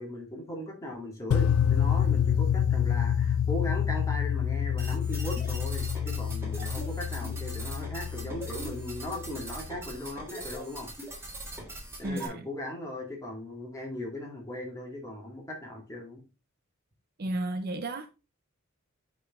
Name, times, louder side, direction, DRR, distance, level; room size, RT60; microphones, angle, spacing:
voice 1, 0.0-10.9 12.0-16.2, left 1 dB, 15° left, 2.1 m, -38 dB
sound 1, 1.3-9.4, left 8 dB, 90° left, 0.3 m, -28 dB
sound 2, 4.8-12.3, right 1 dB, 10° right, 1.9 m, -41 dB
voice 2, 12.0-12.5 17.2-18.1, right 1 dB, 45° right, 0.6 m, -33 dB
9.0 x 3.8 x 3.6 m
head